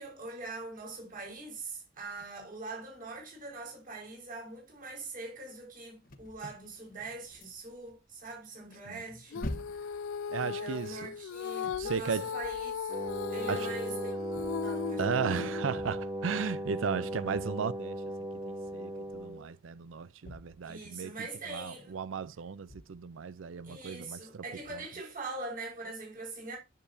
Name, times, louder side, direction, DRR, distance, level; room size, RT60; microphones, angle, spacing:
voice 1, 0.0-9.4 10.4-12.9 13.3-14.1 14.6-15.5 20.6-22.0 23.6-26.6, right 3 dB, 45° right, 4.8 m, -43 dB
sound 1, 6.0-7.9 8.3-13.8 14.3-16.6 17.3-17.7 18.6-19.5 19.8-21.2 22.1-22.2 22.7-23.2 24.6-24.8, left 1 dB, 50° left, 1.1 m, -48 dB
Female singing, 9.3-15.8, left 7 dB, 85° left, 0.4 m, -37 dB
voice 2, 10.3-11.1 11.7-12.3 13.5-13.7 15.0-18.0 18.5-21.1 21.5-24.4, right 6 dB, 80° right, 0.5 m, -35 dB
Wind instrument woodwind instrument, 12.9-19.5, right 1 dB, 25° right, 1.9 m, -37 dB
9.8 x 6.8 x 2.6 m
head